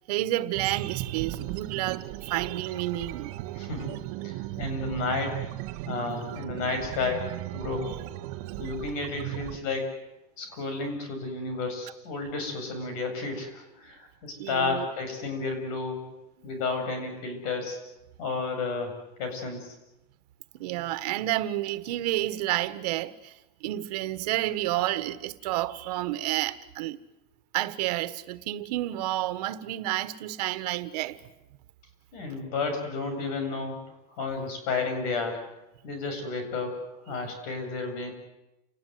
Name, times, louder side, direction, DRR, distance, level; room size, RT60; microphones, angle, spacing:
voice 1, 0.1-3.3 14.4-14.9 20.5-23.3 23.6-27.0 27.5-31.2 37.1-37.2, right 15 dB, 90° right, 1.5 m, -30 dB
sound 1, 0.5-9.6, right 15 dB, 60° right, 1.2 m, -37 dB
voice 2, 3.5-3.9 4.2-5.4 5.8-7.9 8.6-9.9 10.4-16.0 16.4-17.8 18.2-18.9 19.2-19.7 32.1-33.8 34.1-35.4 35.8-36.7 37.1-38.1, left 4 dB, 65° left, 7.9 m, -32 dB
29.0 x 19.5 x 9.5 m
cardioid pair, 170°, 20 cm